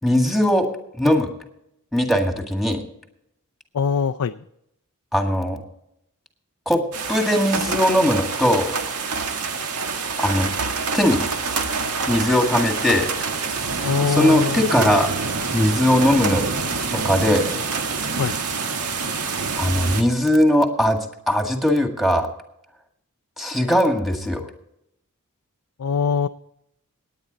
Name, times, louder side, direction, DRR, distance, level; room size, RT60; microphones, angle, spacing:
voice 1, 0.0-0.7 1.0-1.3 1.9-2.8 5.1-5.6 6.7-6.8 7.1-8.8 10.2-10.5 10.9-11.3 12.1-13.1 13.8-15.1 15.5-16.4 16.9-17.5 19.6-22.3 23.4-24.4, left 1 dB, ahead, 3 dB, 1.9 m, -19 dB
voice 2, 3.7-4.4 13.8-14.7 18.2-18.4 25.8-26.3, left 6 dB, 80° left, 8 dB, 0.5 m, -22 dB
sound 1, 6.9-20.0, right 4 dB, 90° right, 1.5 m, -26 dB
17.5 x 9.6 x 4.0 m, 0.78 s
head